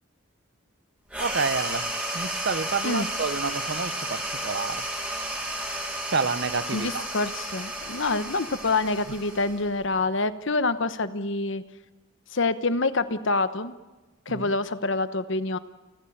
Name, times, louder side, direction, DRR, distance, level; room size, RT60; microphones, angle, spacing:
sound 1, 1.1-10.0, right 1 dB, 5° right, 4.2 m, -32 dB
voice 1, 1.2-1.9 2.1-4.9 6.1-7.0 14.3-14.5, right 4 dB, 55° right, 1.0 m, -29 dB
voice 2, 6.7-11.6 12.3-13.7 14.3-15.6, left 3 dB, 60° left, 1.1 m, -26 dB
30.0 x 14.5 x 8.8 m
head